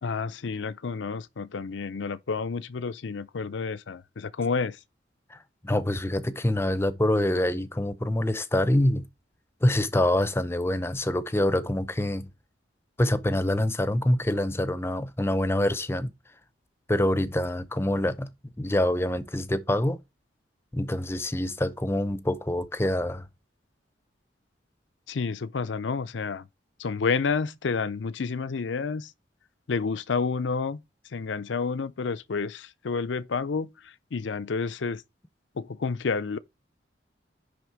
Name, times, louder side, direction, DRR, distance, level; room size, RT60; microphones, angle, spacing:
voice 1, 0.0-4.8 25.1-26.5 26.8-29.1 29.7-30.8 31.1-35.0 35.6-36.4, left 5 dB, 80° left, 0.5 m, -30 dB
voice 2, 5.3-9.1 9.6-12.3 13.0-16.1 16.9-20.0 20.7-23.3, left 1 dB, 15° left, 0.5 m, -26 dB
10.5 x 3.5 x 4.6 m
head